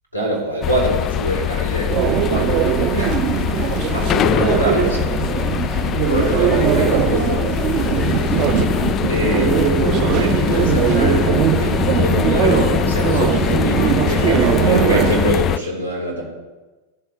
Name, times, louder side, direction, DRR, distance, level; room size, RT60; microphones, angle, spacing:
voice 1, 0.1-3.2 3.9-5.1 6.1-7.6 8.1-8.6 9.1-11.3 11.6-16.2, equal, 85° right, -3 dB, 4.2 m, -24 dB
sound 1, 0.6-15.6, left 11 dB, 30° left, 0.3 m, -22 dB
sound 2, 1.9-15.3, right 12 dB, 40° right, 0.5 m, -20 dB
16.0 x 7.6 x 4.5 m, 1.2 s
figure-of-eight pair, 90°, 0 cm